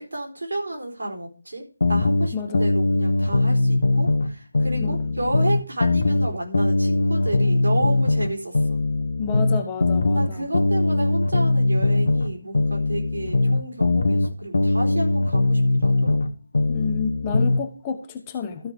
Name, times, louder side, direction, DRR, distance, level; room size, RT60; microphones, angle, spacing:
voice 1, 0.0-8.8 10.1-16.2, right 1 dB, 60° right, 1 dB, 4.1 m, -31 dB
sound 1, 1.8-4.3 4.5-8.3 8.5-12.3 12.5-16.3 16.5-17.6, left 2 dB, 50° left, 1.1 m, -21 dB
voice 2, 2.3-2.7 4.8-5.1 9.2-10.5 16.7-18.7, left 6 dB, 15° left, 5 dB, 1.0 m, -30 dB
13.5 x 5.9 x 4.8 m, 0.36 s
figure-of-eight pair, 155°, 0 cm